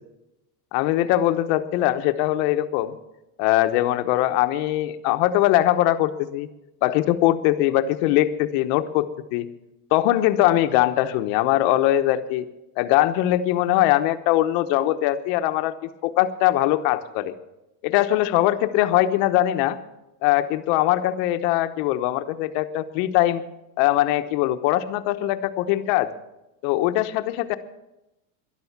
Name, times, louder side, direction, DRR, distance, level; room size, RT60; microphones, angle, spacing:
voice 1, 0.7-2.9 3.4-6.5 6.8-9.5 9.9-12.5 12.8-15.7 16.0-17.3 17.8-19.8 20.2-23.4 23.8-26.1 26.6-27.6, left 14 dB, 70° left, 10 dB, 1.1 m, -21 dB
13.0 x 11.5 x 7.2 m, 0.93 s
supercardioid pair, 135°, 47 cm